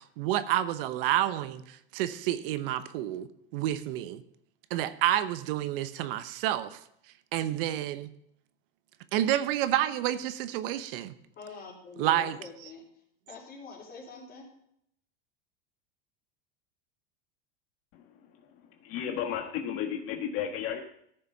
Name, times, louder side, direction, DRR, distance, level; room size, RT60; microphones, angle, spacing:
voice 1, 0.0-4.2 4.7-6.8 7.3-8.1 9.1-11.1 12.0-12.4, right 12 dB, 65° right, 13 dB, 0.9 m, -29 dB
voice 2, 11.4-12.8 13.3-14.5, left 5 dB, 30° left, -1 dB, 4.0 m, -45 dB
voice 3, 18.8-20.8, left 9 dB, 50° left, 3 dB, 1.4 m, -33 dB
13.5 x 6.8 x 5.5 m, 0.72 s
supercardioid pair, 130°, 29 cm